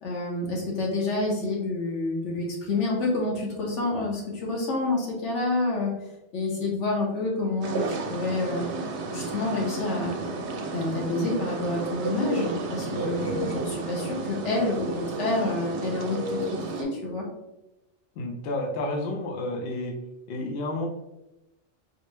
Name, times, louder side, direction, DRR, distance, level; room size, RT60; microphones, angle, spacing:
voice 1, 0.0-5.9 6.3-8.7 9.1-10.2 10.7-16.4 16.7-17.2, left 2 dB, 85° left, -2 dB, 1.3 m, -28 dB
sound 1, 7.6-16.8, right 3 dB, 70° right, 0.8 m, -32 dB
voice 2, 18.2-19.9 20.3-20.9, left 2 dB, 65° left, 1 dB, 0.8 m, -30 dB
4.1 x 2.0 x 3.2 m, 0.92 s
omnidirectional pair, 1.2 m